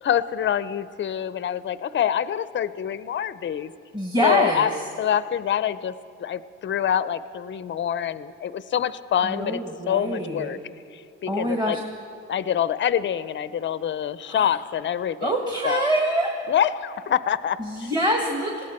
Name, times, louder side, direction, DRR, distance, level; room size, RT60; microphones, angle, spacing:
voice 1, 0.0-3.7 4.2-4.7 5.0-5.9 6.2-9.6 9.9-10.6 10.9-11.8 12.3-15.3 15.6-15.9 16.5-17.9, left 9 dB, 40° left, 15 dB, 0.5 m, -26 dB
voice 2, 3.9-4.7 9.2-10.6 11.3-11.8 14.2-14.5 15.2-16.3 17.6-18.6, equal, 15° right, 1 dB, 1.6 m, -25 dB
19.5 x 17.0 x 4.4 m, 2.4 s
cardioid pair, 90°, 30 cm